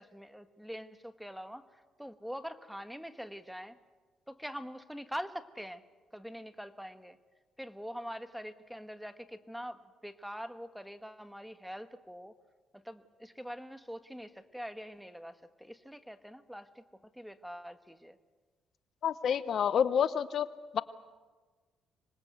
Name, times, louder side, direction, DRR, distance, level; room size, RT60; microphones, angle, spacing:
voice 1, 0.0-3.8 4.3-5.8 6.1-7.2 7.6-12.3 12.7-18.2, equal, ahead, 9 dB, 1.5 m, -44 dB
voice 2, 19.0-20.5 20.7-20.8, left 8 dB, 60° left, 14 dB, 0.8 m, -28 dB
26.0 x 20.0 x 8.1 m, 1.4 s
cardioid pair, 90°, 0 cm